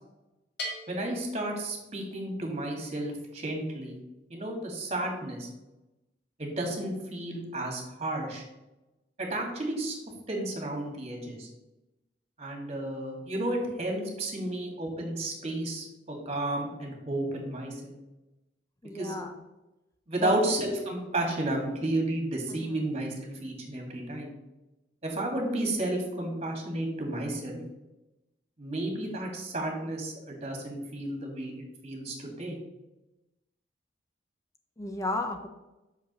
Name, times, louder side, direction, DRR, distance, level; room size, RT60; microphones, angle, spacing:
Bell, 0.6-2.3, left 1 dB, 65° left, 1.9 m, -41 dB
voice 1, 0.9-4.0 4.3-5.5 6.4-8.4 9.2-10.0 10.3-11.5 12.4-17.9 18.9-19.2 20.1-24.3 25.0-27.6 28.6-32.6, right 1 dB, 35° right, 1 dB, 2.2 m, -32 dB
voice 2, 18.8-19.3 20.2-20.4 22.5-22.7 34.8-35.5, left 2 dB, 20° left, 5 dB, 0.6 m, -33 dB
5.9 x 5.3 x 6.8 m, 1.0 s
head